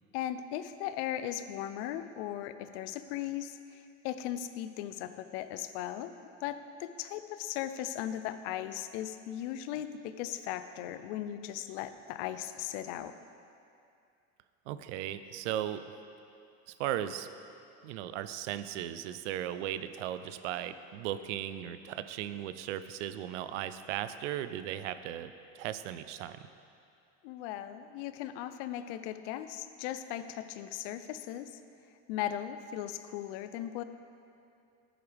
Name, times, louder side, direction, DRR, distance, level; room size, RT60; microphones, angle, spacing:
voice 1, 0.1-6.1 6.4-13.1 27.2-31.5 32.1-33.8, left 11 dB, 75° left, 11 dB, 0.6 m, -38 dB
voice 2, 14.7-15.8 16.7-17.3 17.8-26.5, right 11 dB, 85° right, 12 dB, 0.5 m, -37 dB
11.0 x 8.8 x 3.4 m, 2.6 s
supercardioid pair, 90°, 35 cm